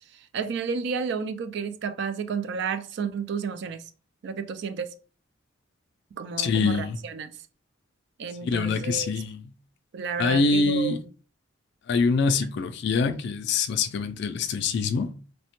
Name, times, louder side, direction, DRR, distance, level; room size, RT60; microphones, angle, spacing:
voice 1, 0.1-3.8 4.2-4.9 6.2-7.4 8.2-9.1 9.9-11.0, right 5 dB, 55° right, 0.3 m, -31 dB
voice 2, 6.4-7.0 8.4-9.4 10.2-11.0 11.9-15.1, left 4 dB, 55° left, 0.3 m, -24 dB
3.1 x 2.1 x 2.9 m
head